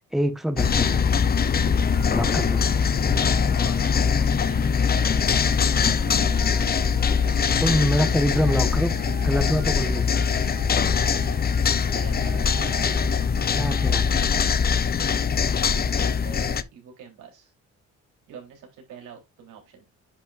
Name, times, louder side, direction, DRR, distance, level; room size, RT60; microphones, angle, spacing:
voice 1, 0.1-1.0 2.1-2.6 7.6-8.9 9.2-10.2 13.5-14.3, equal, ahead, 1.1 m, -25 dB
sound 1, 0.6-16.6, left 6 dB, 30° left, 0.6 m, -22 dB
sound 2, 1.4-14.3, right 3 dB, 30° right, 3.3 m, -41 dB
voice 2, 3.2-5.6 6.1-6.9 8.8-8.9 11.9-12.5 15.7-17.5 18.3-19.8, right 6 dB, 85° right, 3.6 m, -45 dB
9.7 x 5.7 x 2.5 m
cardioid pair, 90°, 30 cm